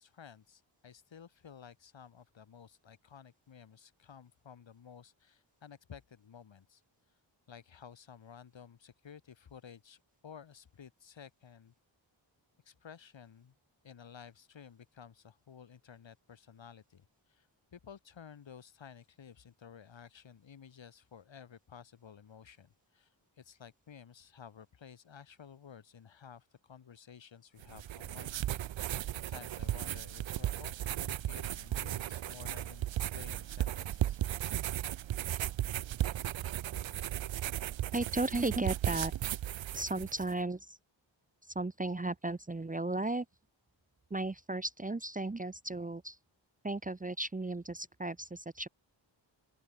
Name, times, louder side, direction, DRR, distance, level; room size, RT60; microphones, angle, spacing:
voice 1, 0.0-6.8 7.5-11.7 12.7-13.5 13.8-28.4 29.1-34.2, left 7 dB, 70° left, 2.0 m, -54 dB
sound 1, 27.6-40.3, right 12 dB, 70° right, 0.6 m, -36 dB
voice 2, 37.9-39.1 39.7-40.8 41.4-43.3 44.1-46.2 46.6-48.7, right 2 dB, 15° right, 0.8 m, -35 dB
open air
wide cardioid pair, 130°, 47 cm